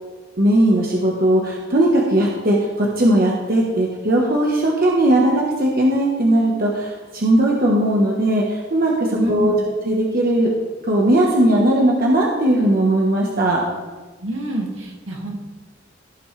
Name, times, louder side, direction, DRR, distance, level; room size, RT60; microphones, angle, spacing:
voice 1, 0.4-10.5 10.8-13.6, right 1 dB, 45° right, -2 dB, 1.1 m, -18 dB
voice 2, 9.1-9.6 14.2-15.4, right 1 dB, 75° right, 0 dB, 2.0 m, -26 dB
16.5 x 6.0 x 3.3 m, 1.3 s
head